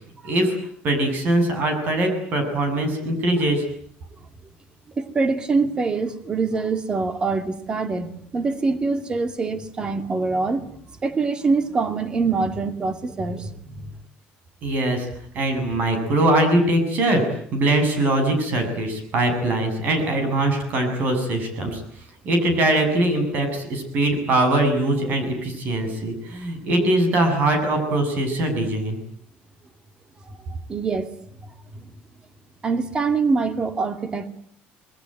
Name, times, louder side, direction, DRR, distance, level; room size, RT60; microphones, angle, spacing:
voice 1, 0.2-0.6 0.8-3.6 14.6-15.1 15.3-17.2 17.5-21.8 22.2-29.0, right 1 dB, 45° right, 8.0 m, -22 dB
voice 2, 5.0-10.7 11.0-13.9 30.3-30.4 30.7-31.1 31.4-31.9 32.6-34.3, right 4 dB, 20° right, 2.3 m, -24 dB
28.0 x 21.5 x 9.2 m
cardioid pair, 165°, 4 cm